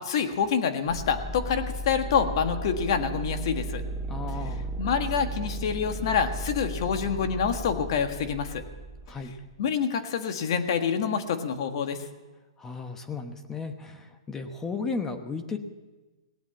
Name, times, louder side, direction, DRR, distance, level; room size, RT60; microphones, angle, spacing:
voice 1, 0.0-3.8 4.8-8.6 9.6-12.0, left 6 dB, 50° left, 7 dB, 1.6 m, -27 dB
sound 1, 0.9-9.6, right 1 dB, 15° right, 0.7 m, -35 dB
voice 2, 4.1-4.7 9.1-9.3 12.6-15.6, left 4 dB, 10° left, 7 dB, 1.0 m, -34 dB
18.5 x 8.0 x 9.0 m, 1.2 s
hypercardioid pair, 155°, 3 cm